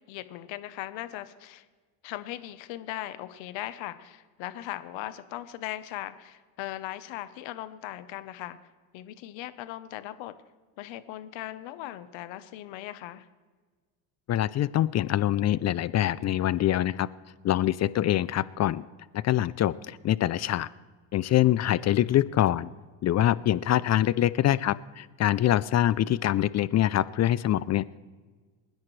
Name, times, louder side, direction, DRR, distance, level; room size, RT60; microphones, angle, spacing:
voice 1, 0.1-1.7 2.0-8.6 8.9-10.3 10.8-13.3 21.7-22.0, left 14 dB, 75° left, 12 dB, 1.1 m, -39 dB
voice 2, 14.3-17.1 17.4-18.9 19.1-20.7 21.1-22.7 23.0-28.0, left 12 dB, 40° left, 18 dB, 0.4 m, -24 dB
27.5 x 10.5 x 3.2 m, 1.4 s
cardioid pair, 110°, 46 cm